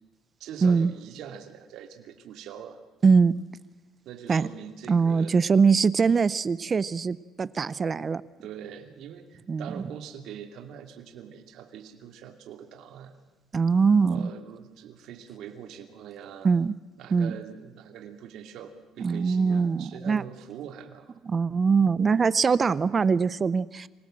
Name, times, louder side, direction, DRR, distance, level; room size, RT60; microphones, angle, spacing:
voice 1, 0.4-2.8 4.0-5.5 8.4-13.1 14.1-16.5 17.0-21.1, right 8 dB, 65° right, 6 dB, 2.5 m, -43 dB
voice 2, 3.0-3.3 4.3-4.5 4.9-8.2 9.5-9.7 13.5-14.3 16.4-16.7 17.1-17.3 19.0-20.2 21.3-23.9, right 5 dB, 25° right, 18 dB, 0.7 m, -22 dB
26.5 x 17.5 x 7.7 m, 1.2 s
cardioid pair, 140°, 0 cm